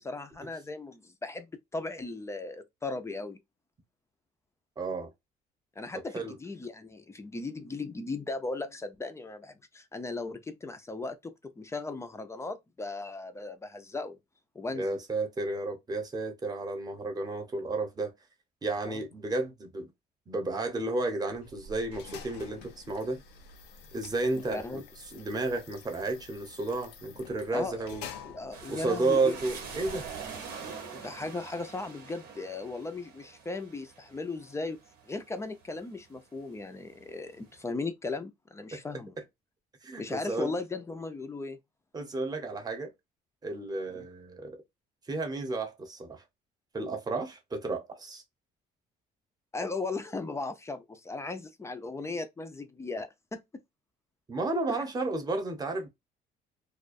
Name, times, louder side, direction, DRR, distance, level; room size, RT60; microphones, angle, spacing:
voice 1, 0.0-3.4 5.8-14.2 14.6-15.0 18.9-19.0 24.5-24.8 27.5-27.9 28.2-29.4 30.9-34.8 35.0-39.2 40.0-41.6 43.9-44.1 49.5-53.6 54.7-54.8, left 3 dB, 15° left, 0.4 m, -37 dB
voice 2, 4.8-5.1 6.1-6.4 14.7-18.1 18.6-19.9 20.3-23.2 23.9-28.1 28.7-30.1 38.7-38.8 39.8-40.5 41.9-42.9 43.4-44.6 45.1-46.2 46.7-48.2 54.3-55.9, right 3 dB, 25° right, 0.8 m, -32 dB
sound 1, 21.3-30.6, left 5 dB, 90° left, 0.6 m, -49 dB
sound 2, 28.5-36.2 36.6-37.4, right 6 dB, 75° right, 0.8 m, -45 dB
2.3 x 2.2 x 2.4 m
cardioid pair, 110°, 17 cm